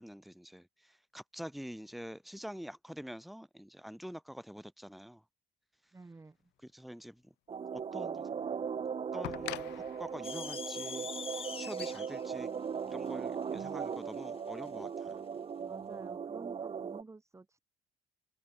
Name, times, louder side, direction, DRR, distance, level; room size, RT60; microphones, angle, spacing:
voice 1, 0.0-5.2 6.6-7.3 7.7-8.3 9.1-12.5 12.9-15.3, equal, ahead, 2.8 m, -46 dB
voice 2, 5.9-6.5 15.6-17.6, right 3 dB, 15° right, 2.7 m, -51 dB
sound 1, 7.5-17.0, right 7 dB, 35° right, 1.6 m, -38 dB
sound 2, 7.8-7.9 9.2-12.1 13.3-13.4, left 20 dB, 90° left, 2.0 m, -45 dB
sound 3, 10.2-14.8, left 6 dB, 35° left, 1.4 m, -44 dB
open air
cardioid pair, 110°, 17 cm